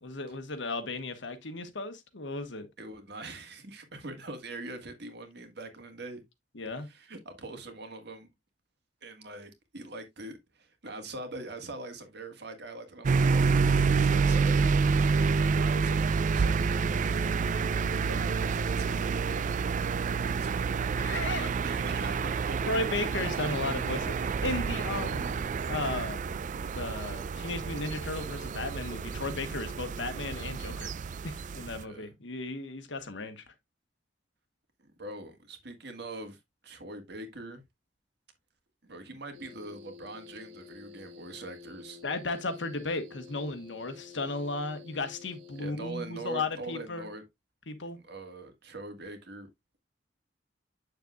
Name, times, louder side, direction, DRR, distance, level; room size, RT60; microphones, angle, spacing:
voice 1, 0.0-2.7 6.5-6.9 21.0-21.5 22.7-26.2 26.6-30.9 31.2-33.4 42.0-47.1 47.7-48.0, left 2 dB, 90° left, 1.3 m, -35 dB
voice 2, 2.8-6.2 6.8-8.3 9.0-17.3 18.1-20.6 21.6-22.9 24.9-25.1 31.7-32.1 35.0-37.6 38.8-42.0 45.5-47.2 48.0-49.5, right 2 dB, 65° right, 1.8 m, -43 dB
sound 1, 13.0-31.8, right 5 dB, 45° right, 0.4 m, -28 dB
sound 2, 39.3-45.6, left 5 dB, 90° right, 1.4 m, -50 dB
8.1 x 6.7 x 2.3 m
head